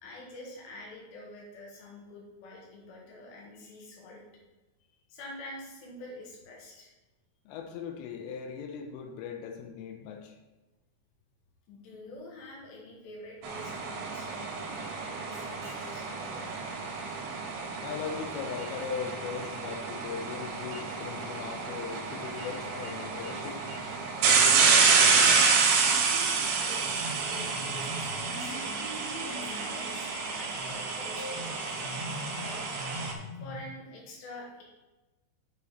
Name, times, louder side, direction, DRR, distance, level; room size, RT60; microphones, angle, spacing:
voice 1, 0.0-4.2 4.9-6.9 11.7-16.5 26.6-28.6 29.3-32.6 33.4-34.6, left 1 dB, 65° left, -2 dB, 3.6 m, -47 dB
voice 2, 7.5-10.4 17.8-23.7 24.2-25.4, left 7 dB, 85° left, 4 dB, 3.3 m, -39 dB
sound 1, 13.4-33.1, right 5 dB, 85° right, 3.4 m, -28 dB
sound 2, 26.8-33.7, left 1 dB, 40° left, 3.0 m, -42 dB
8.3 x 5.6 x 4.1 m, 1.1 s
omnidirectional pair, 5.7 m